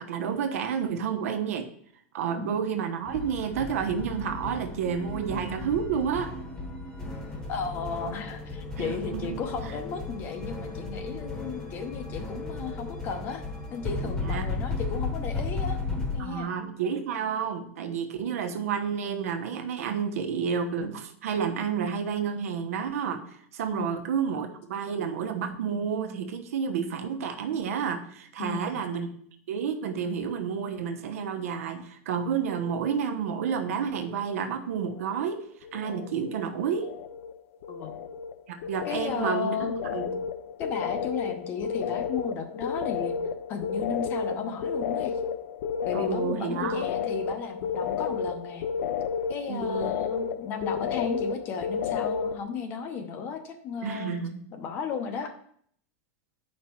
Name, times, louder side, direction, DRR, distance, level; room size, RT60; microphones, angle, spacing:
voice 1, 0.0-1.7 2.1-6.3 8.8-9.4 14.2-14.5 16.2-29.1 29.5-35.4 35.7-36.9 38.5-39.6 39.9-40.2 45.9-46.9 49.5-49.9 53.8-54.4, right 7 dB, 85° right, 6 dB, 1.1 m, -30 dB
voice 2, 2.3-2.6 7.5-13.4 13.7-16.5 23.7-24.0 28.4-28.8 37.7-38.0 38.8-39.8 40.6-43.2 43.5-45.1 45.9-48.7 49.3-54.2 54.5-55.3, left 6 dB, 25° left, 7 dB, 0.8 m, -34 dB
sound 1, 3.0-16.2, left 3 dB, 5° left, 1.1 m, -35 dB
sound 2, 34.8-35.3 35.6-36.4 36.6-52.4, left 6 dB, 65° left, 0.6 m, -32 dB
8.6 x 5.4 x 4.5 m, 0.63 s
supercardioid pair, 180°, 8 cm